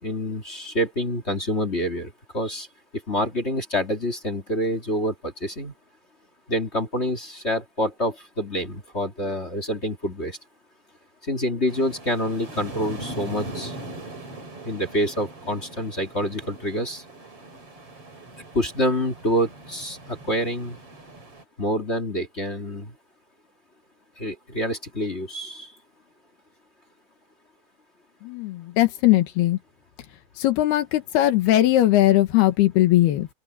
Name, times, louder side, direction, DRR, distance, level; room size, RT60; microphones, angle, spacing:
voice 1, 0.0-2.7 3.1-5.7 6.5-10.4 11.2-13.7 14.6-17.0 18.5-20.8 21.6-23.0 24.2-25.7, equal, 20° left, 1.9 m, -27 dB
sound 1, 11.7-21.4, right 1 dB, 35° right, 6.4 m, -40 dB
voice 2, 28.2-29.6 30.4-33.3, left 15 dB, 85° left, 3.5 m, -19 dB
open air
omnidirectional pair, 4.4 m